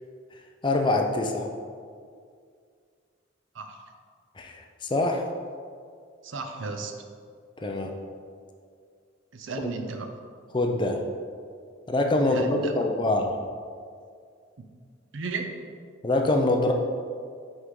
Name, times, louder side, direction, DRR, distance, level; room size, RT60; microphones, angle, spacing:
voice 1, 0.6-1.5 4.4-5.2 7.6-7.9 10.5-11.0 11.9-13.4 16.0-16.7, left 2 dB, 25° left, 3 dB, 0.5 m, -24 dB
voice 2, 6.2-6.9 9.3-10.1 12.3-12.7 15.1-15.5, right 4 dB, 75° right, 6 dB, 0.6 m, -34 dB
6.3 x 4.6 x 3.7 m, 2.1 s
head